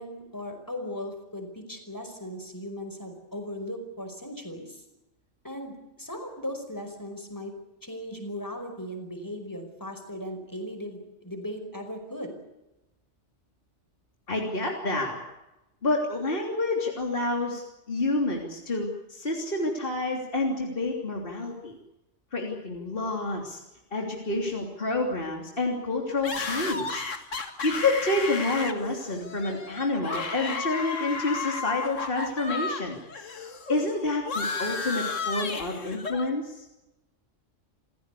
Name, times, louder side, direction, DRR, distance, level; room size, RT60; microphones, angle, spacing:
voice 1, 0.0-4.8 5.4-7.5 7.8-12.3, left 1 dB, 15° left, 5 dB, 5.2 m, -37 dB
voice 2, 14.3-15.2 15.8-21.8 22.3-23.6 23.9-27.0 27.6-33.0 33.7-36.6, left 2 dB, 45° left, 1 dB, 3.5 m, -28 dB
sound 1, 26.2-32.8 33.1-36.3, left 4 dB, 90° left, 2.4 m, -33 dB
28.5 x 16.5 x 8.4 m, 0.97 s
omnidirectional pair, 1.3 m